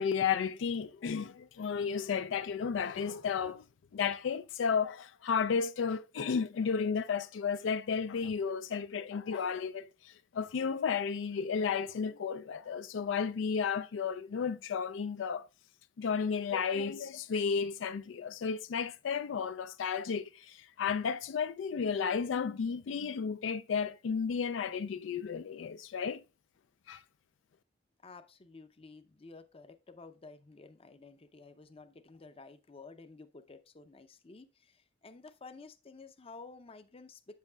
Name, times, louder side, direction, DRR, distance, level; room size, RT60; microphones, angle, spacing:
voice 1, 0.0-3.7 3.9-15.5 16.0-26.2 26.9-27.0, left 6 dB, 85° left, 0.4 m, -33 dB
voice 2, 28.0-37.4, left 3 dB, 30° left, 0.5 m, -52 dB
8.2 x 7.5 x 2.2 m
head